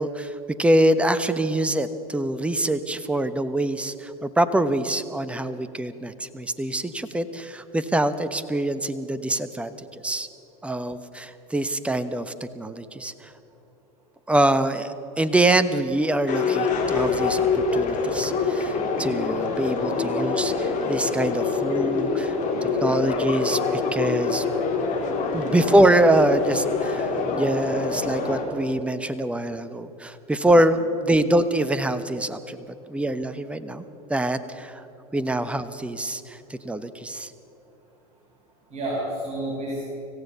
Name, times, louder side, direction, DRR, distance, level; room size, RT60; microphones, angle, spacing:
voice 1, 0.0-10.3 10.6-13.3 14.3-22.3 22.6-24.4 25.3-32.6 32.9-33.8 34.1-34.8 35.1-37.3, right 1 dB, 5° right, 13 dB, 1.0 m, -24 dB
sound 1, 16.3-28.4, left 4 dB, 40° left, 4.3 m, -25 dB
voice 2, 38.7-39.8, right 1 dB, 35° right, -6 dB, 6.5 m, -32 dB
25.5 x 15.5 x 6.9 m, 3.0 s
hypercardioid pair, 85°, 20 cm